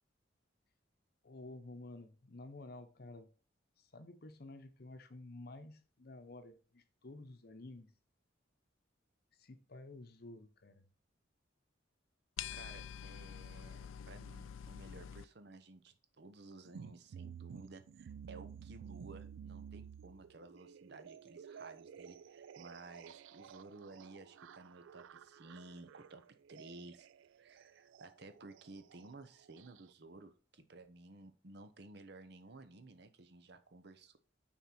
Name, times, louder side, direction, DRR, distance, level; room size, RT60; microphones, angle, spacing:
voice 1, 1.2-3.3 3.8-7.9 9.4-10.9, left 2 dB, 50° left, 0.8 m, -52 dB
sound 1, 12.4-15.2, left 9 dB, 90° left, 0.4 m, -46 dB
voice 2, 12.5-26.2 26.5-27.1 27.4-34.2, right 3 dB, 55° right, 0.8 m, -55 dB
sound 2, 16.6-29.9, right 7 dB, 80° right, 0.3 m, -53 dB
5.9 x 4.4 x 5.8 m
head